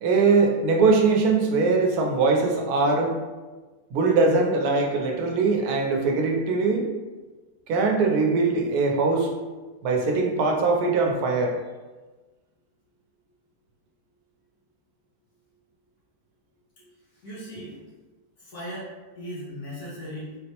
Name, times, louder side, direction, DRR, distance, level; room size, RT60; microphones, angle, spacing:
voice 1, 0.0-3.1 3.9-6.9 7.7-9.3 9.8-11.6, right 4 dB, 80° right, 2 dB, 1.1 m, -21 dB
voice 2, 17.2-17.8 18.4-20.4, equal, 85° left, -9 dB, 2.1 m, -37 dB
3.8 x 2.0 x 2.8 m, 1.2 s
omnidirectional pair, 1.6 m